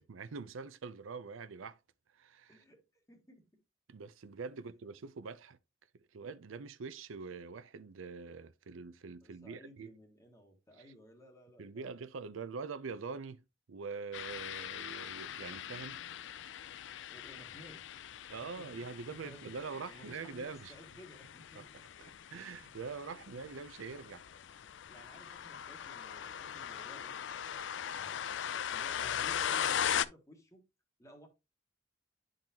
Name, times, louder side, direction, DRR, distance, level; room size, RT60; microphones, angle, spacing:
voice 1, 0.1-1.8 2.1-2.6 3.9-5.6 6.1-9.9 10.7-10.8 11.6-13.4 13.7-16.0 18.3-20.7 21.6-21.7 22.3-24.2, right 5 dB, 85° right, 0.5 m, -44 dB
voice 2, 2.5-3.6 4.5-4.6 9.2-12.1 17.1-17.9 18.4-21.7 22.0-22.1 23.1-23.3 24.9-27.1 27.9-30.6 31.0-31.3, equal, 15° left, 1.4 m, -56 dB
sound 1, 14.1-30.0, left 9 dB, 65° left, 0.4 m, -40 dB
10.5 x 3.9 x 2.8 m
head